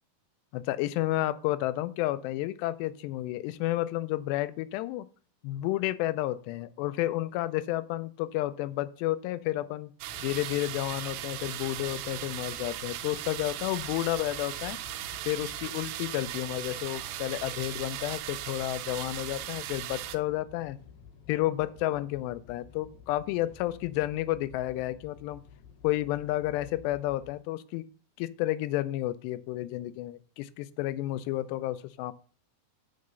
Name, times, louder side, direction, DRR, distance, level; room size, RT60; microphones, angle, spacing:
voice 1, 0.5-5.1 5.4-9.9 10.2-14.8 15.3-20.8 21.3-25.4 25.8-27.8 28.2-32.1, left 15 dB, 90° left, 14 dB, 2.8 m, -31 dB
sound 1, 10.0-20.2, right 13 dB, 80° right, 2.2 m, -38 dB
sound 2, 10.1-27.4, left 7 dB, 75° left, 1.7 m, -53 dB
6.7 x 6.6 x 6.7 m, 0.43 s
omnidirectional pair, 4.8 m